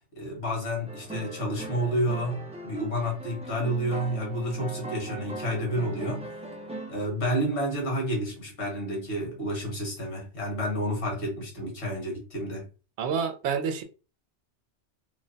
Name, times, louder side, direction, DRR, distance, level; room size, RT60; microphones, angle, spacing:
voice 1, 0.2-6.3 6.9-12.7, equal, 70° left, 1.7 m, -30 dB
sound 1, 0.9-7.1, right 2 dB, 10° right, 0.4 m, -40 dB
voice 2, 13.0-13.8, right 6 dB, 70° right, 0.8 m, -28 dB
3.2 x 2.1 x 3.8 m
omnidirectional pair, 1.2 m